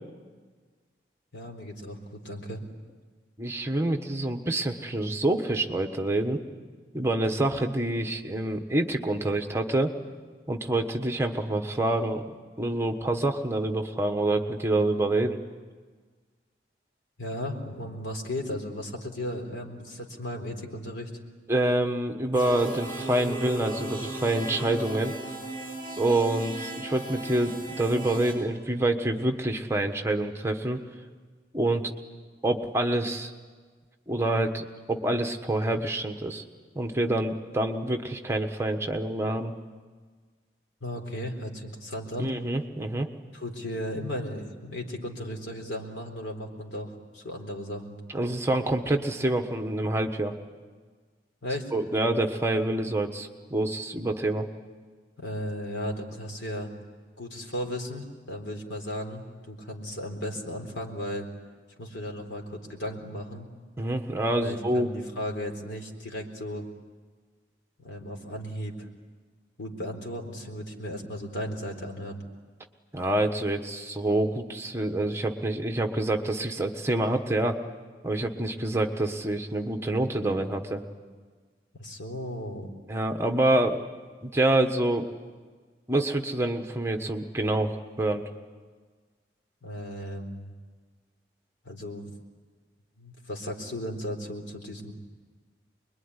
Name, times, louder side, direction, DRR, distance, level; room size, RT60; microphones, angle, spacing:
voice 1, 1.3-2.6 17.2-21.2 40.8-42.3 43.3-48.0 51.4-51.7 55.2-56.7 57.2-61.3 61.8-63.5 64.4-66.7 67.8-68.8 69.6-72.2 81.7-82.7 89.6-90.5 91.6-92.1 93.0-94.9, equal, 90° left, 3 dB, 4.0 m, -35 dB
voice 2, 3.4-6.4 6.9-9.9 10.5-12.2 12.6-15.4 21.5-25.1 26.0-30.8 31.5-31.9 32.4-33.3 34.1-36.4 36.7-39.5 42.2-43.1 48.1-50.3 51.7-54.5 63.8-64.9 72.9-77.6 78.0-80.8 82.9-83.8 84.2-85.0 85.9-88.2, right 1 dB, 15° right, 4 dB, 1.3 m, -27 dB
sound 1, 22.3-28.3, right 1 dB, 15° left, 7.5 m, -36 dB
25.5 x 22.0 x 9.8 m, 1.5 s
head